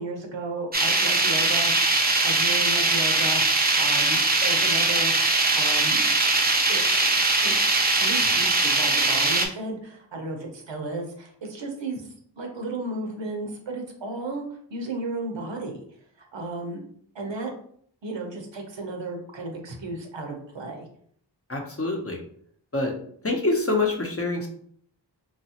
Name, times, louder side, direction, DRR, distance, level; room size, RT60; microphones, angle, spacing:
voice 1, 0.0-1.9 2.2-5.1 5.5-6.1 6.7-7.0 7.4-7.6 8.0-14.4 14.7-15.8 16.2-16.8 17.1-17.5 18.0-20.9, right 2 dB, 80° right, 2 dB, 0.7 m, -34 dB
sound 1, 0.7-9.5, right 3 dB, 20° right, 0.5 m, -21 dB
voice 2, 21.5-22.2 22.7-22.9 23.2-24.5, left 2 dB, 30° left, 1 dB, 0.7 m, -25 dB
3.0 x 2.3 x 2.8 m, 0.62 s
wide cardioid pair, 45°, 44 cm